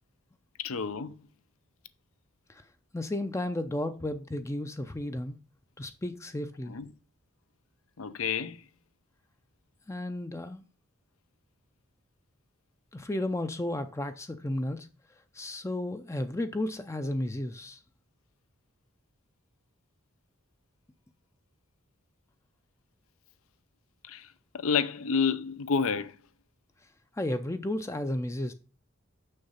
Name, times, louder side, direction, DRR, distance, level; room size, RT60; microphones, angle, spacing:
voice 1, 0.6-1.2 6.7-6.9 8.0-8.6 24.0-26.2, left 6 dB, 80° left, 0.6 m, -30 dB
voice 2, 2.9-5.4 5.8-6.7 9.9-10.7 12.9-14.9 15.3-17.8 27.2-28.5, left 1 dB, 15° left, 0.4 m, -33 dB
6.5 x 6.4 x 5.7 m
head